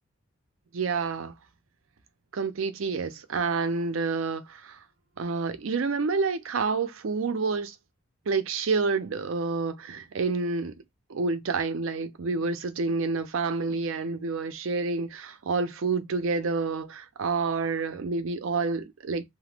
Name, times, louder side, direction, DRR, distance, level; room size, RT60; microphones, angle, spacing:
voice 1, 0.7-1.3 2.3-4.8 5.2-7.8 8.3-10.7 11.1-19.2, right 4 dB, 80° right, 0.5 m, -28 dB
2.8 x 2.0 x 3.3 m
head